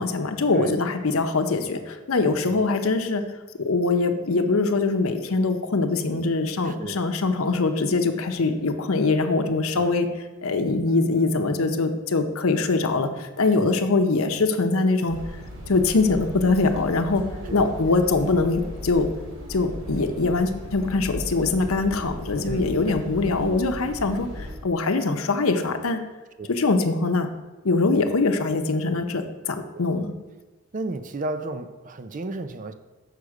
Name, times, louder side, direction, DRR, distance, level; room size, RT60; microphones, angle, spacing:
voice 1, 0.0-3.3 3.6-10.1 10.4-15.2 15.7-17.2 17.5-19.1 19.5-26.0 26.5-27.3 27.6-30.1, left 3 dB, 75° left, 6 dB, 0.7 m, -23 dB
voice 2, 6.6-7.0 9.7-10.0 13.6-13.8 17.5-17.7 22.5-22.9 26.4-26.5 29.7-29.8 30.7-32.7, right 2 dB, 40° right, 10 dB, 0.5 m, -33 dB
sound 1, 15.1-24.6, equal, 60° right, 1.8 m, -37 dB
6.6 x 4.8 x 6.4 m, 1.2 s
head